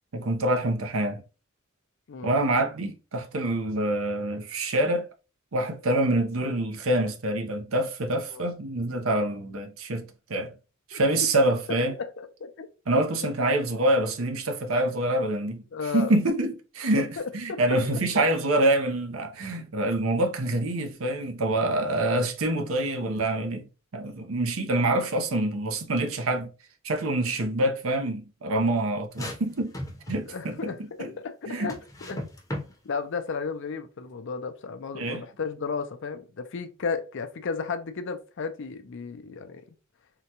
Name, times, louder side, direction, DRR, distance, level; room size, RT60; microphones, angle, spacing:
voice 1, 0.1-1.2 2.2-5.1 5.5-10.0 10.3-10.5 10.9-11.9 12.9-15.6 15.9-23.7 23.9-26.5 26.8-29.7 30.1-30.7 31.0-31.1 31.5-31.7 34.9-35.2, right 1 dB, 75° right, 0.7 m, -26 dB
voice 2, 12.0-12.7 15.7-16.2 17.2-17.6 30.3-31.8 32.1-32.3 32.8-39.6, left 5 dB, 60° left, 0.5 m, -34 dB
sound 1, 29.1-30.4 31.7-32.7, left 1 dB, 15° left, 0.7 m, -35 dB
3.7 x 2.2 x 2.9 m
head